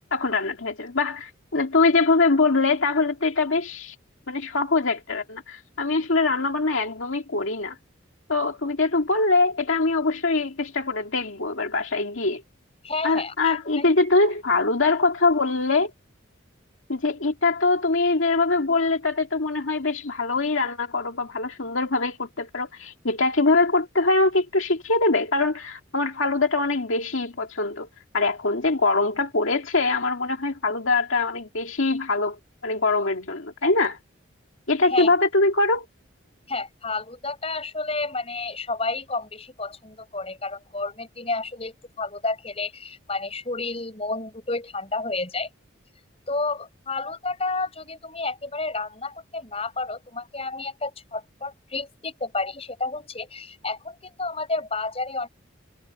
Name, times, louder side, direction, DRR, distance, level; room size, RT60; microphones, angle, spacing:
voice 1, 0.1-4.0 4.3-7.8 8.3-12.4 13.0-15.9 16.9-27.9 28.1-32.4 32.6-34.0 34.7-35.9, left 3 dB, 80° left, 2.1 m, -23 dB
voice 2, 12.8-13.9 34.9-35.1 36.5-45.5 46.3-55.3, left 3 dB, 30° left, 6.3 m, -31 dB
head